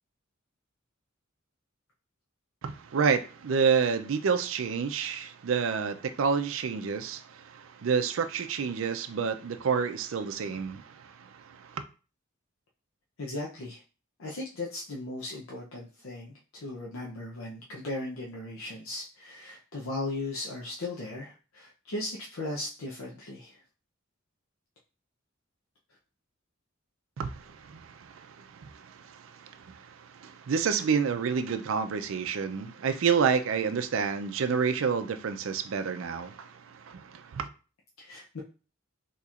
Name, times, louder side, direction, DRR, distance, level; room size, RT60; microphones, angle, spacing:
voice 1, 2.6-11.8 27.2-37.5, right 6 dB, 70° right, 0.4 m, -29 dB
voice 2, 13.2-13.8 14.2-23.6 38.0-38.4, left 2 dB, 80° left, 0.6 m, -37 dB
4.2 x 2.9 x 2.4 m
head